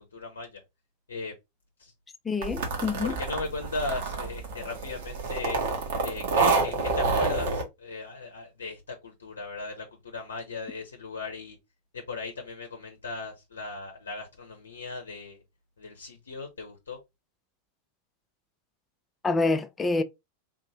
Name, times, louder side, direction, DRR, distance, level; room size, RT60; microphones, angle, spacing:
voice 1, 0.1-0.6 1.1-1.3 1.8-1.9 3.0-5.6 6.0-11.6 11.9-15.4 15.8-17.0, left 3 dB, 70° left, 0.7 m, -37 dB
voice 2, 2.2-3.2 19.2-20.0, left 3 dB, 15° left, 0.4 m, -27 dB
sound 1, 2.4-7.6, right 4 dB, 55° right, 1.1 m, -28 dB
3.6 x 2.6 x 3.0 m
figure-of-eight pair, 90°, 0 cm